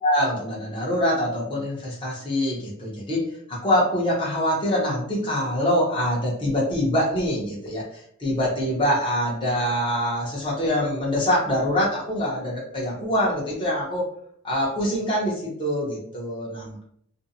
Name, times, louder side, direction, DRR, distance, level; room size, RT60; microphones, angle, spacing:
voice 1, 0.0-7.8 8.2-14.0 14.4-16.8, equal, 25° left, -6 dB, 0.8 m, -24 dB
2.5 x 2.1 x 2.7 m, 0.66 s
head